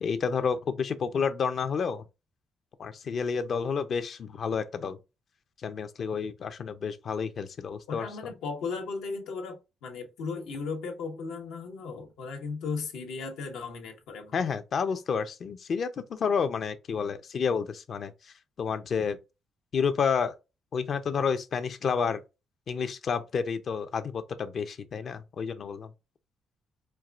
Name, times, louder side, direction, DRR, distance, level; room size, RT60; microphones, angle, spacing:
voice 1, 0.0-2.0 2.8-5.0 5.6-8.1 14.3-19.2 19.7-20.4 20.7-22.2 22.7-25.9, left 6 dB, 55° left, 0.6 m, -30 dB
voice 2, 7.9-14.4, left 4 dB, 90° left, 1.1 m, -36 dB
4.6 x 2.5 x 2.4 m
cardioid pair, 90°, 0 cm